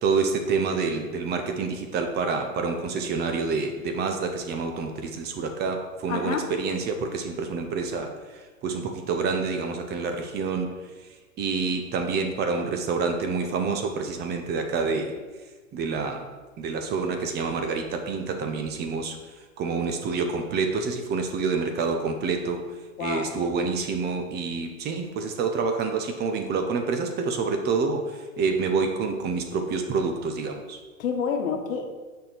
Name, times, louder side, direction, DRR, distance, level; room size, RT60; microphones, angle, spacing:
voice 1, 0.0-10.7 11.0-11.1 11.4-15.2 15.7-16.3 16.6-19.2 19.6-22.6 23.0-30.8, right 4 dB, 25° right, 5 dB, 0.7 m, -27 dB
voice 2, 6.1-6.5 23.0-23.3 31.0-31.9, left 6 dB, 70° left, 4 dB, 1.4 m, -28 dB
6.6 x 4.4 x 6.6 m, 1.3 s
hypercardioid pair, 120°, 42 cm